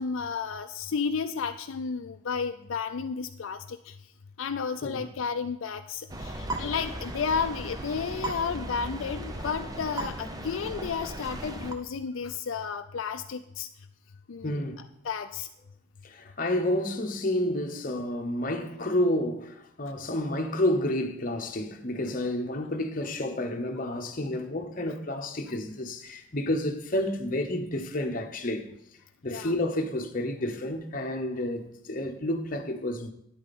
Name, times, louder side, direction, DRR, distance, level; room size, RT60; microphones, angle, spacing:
voice 1, 0.0-3.9 4.4-13.7 14.3-14.6 15.0-15.5 29.3-29.5, left 5 dB, 75° left, 0.4 m, -32 dB
sound 1, 6.1-11.7, right 1 dB, 20° right, 0.6 m, -36 dB
voice 2, 14.4-14.8 16.0-28.7 29.2-33.1, left 1 dB, 40° left, 1.0 m, -30 dB
9.9 x 8.5 x 4.2 m
head